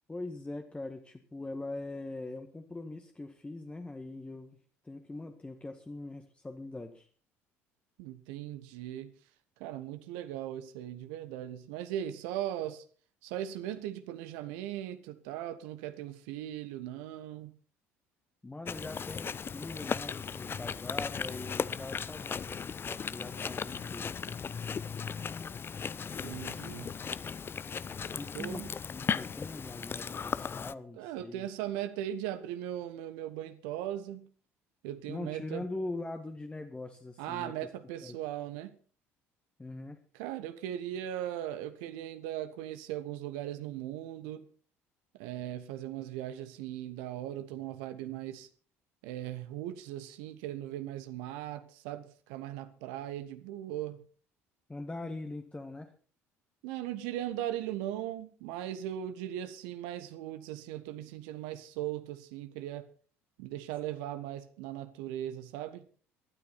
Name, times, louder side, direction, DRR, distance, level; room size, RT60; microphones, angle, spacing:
voice 1, 0.1-4.6 4.8-7.1 18.4-24.2 28.2-31.5 35.1-37.7 38.0-38.2 39.6-40.0 54.7-55.9, left 2 dB, 15° left, 1.7 m, -42 dB
voice 2, 8.0-9.1 9.6-12.8 13.2-17.6 26.2-26.9 28.3-28.7 31.0-34.3 34.8-35.7 37.2-38.8 40.1-44.5 45.1-48.5 49.0-54.0 56.6-62.9 63.4-65.8, right 12 dB, 65° right, 1.3 m, -38 dB
Chewing mastication, 18.6-30.7, left 6 dB, 30° left, 0.6 m, -37 dB
19.5 x 12.5 x 4.3 m
figure-of-eight pair, 55°, 8 cm